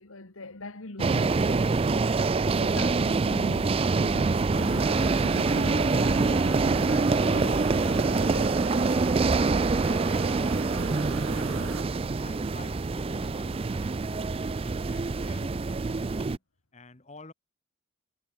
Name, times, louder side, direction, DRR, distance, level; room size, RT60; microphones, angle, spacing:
voice 1, 0.0-9.4, left 2 dB, 80° left, 2.2 m, -42 dB
sound 1, 1.0-16.4, right 3 dB, 25° right, 0.4 m, -25 dB
sound 2, 4.5-11.8, right 3 dB, 80° right, 2.7 m, -39 dB
voice 2, 9.5-14.3 14.6-16.4 16.7-17.3, left 2 dB, 35° left, 1.5 m, -49 dB
head